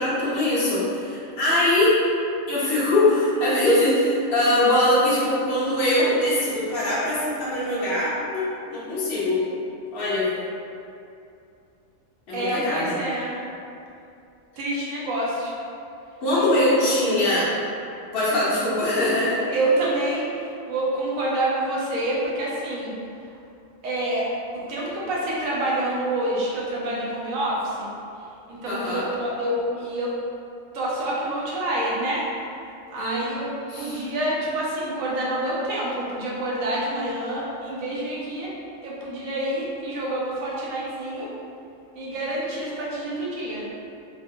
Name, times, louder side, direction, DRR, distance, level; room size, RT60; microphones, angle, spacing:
voice 1, 0.0-2.0 2.5-9.4 9.9-10.3 12.3-13.0 16.2-17.5 18.1-19.4 28.7-29.1 33.0-33.2 33.7-34.1, left 1 dB, 50° left, -9 dB, 1.0 m, -22 dB
voice 2, 12.3-13.4 14.6-15.6 16.8-16.9 19.5-22.9 23.8-27.9 28.5-30.1 30.7-32.3 32.6-38.5 38.8-41.3 41.9-43.7, right 1 dB, 80° right, -5 dB, 1.1 m, -27 dB
3.6 x 2.5 x 2.6 m, 2.6 s
omnidirectional pair, 1.4 m